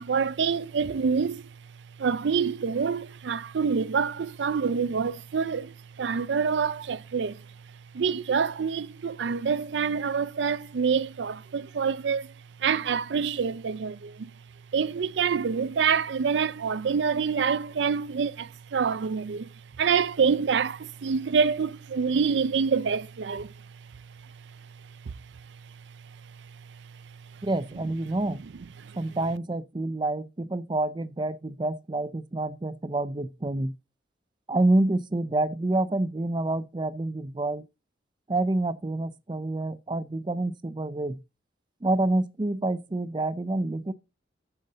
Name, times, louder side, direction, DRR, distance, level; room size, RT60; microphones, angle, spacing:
voice 1, 0.0-1.5 2.0-7.5 7.9-12.3 12.6-14.3 14.7-19.5 19.8-23.7 23.9-24.3 25.1-25.2 26.4-27.0 27.3-27.4 28.8-29.0, right 6 dB, 75° right, 0.5 m, -27 dB
voice 2, 27.4-28.4 28.9-33.7 34.5-37.7 38.3-41.2 41.8-43.9, right 2 dB, 25° right, 0.5 m, -27 dB
9.1 x 7.0 x 4.0 m
head